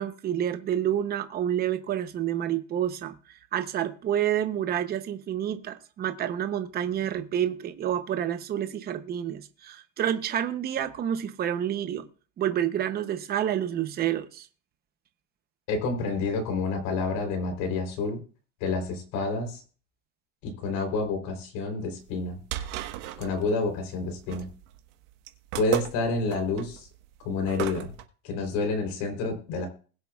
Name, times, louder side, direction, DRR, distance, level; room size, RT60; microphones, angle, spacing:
voice 1, 0.0-3.1 3.5-12.1 12.4-14.5, right 10 dB, 25° right, 0.8 m, -29 dB
voice 2, 15.7-18.2 18.6-19.6 20.4-22.4 23.2-24.5 25.6-26.9 27.2-27.9 28.2-29.7, left 3 dB, 60° left, 3.7 m, -29 dB
sound 1, 22.1-28.0, right 13 dB, 70° right, 1.4 m, -35 dB
20.5 x 7.6 x 2.4 m
cardioid pair, 160°, 38 cm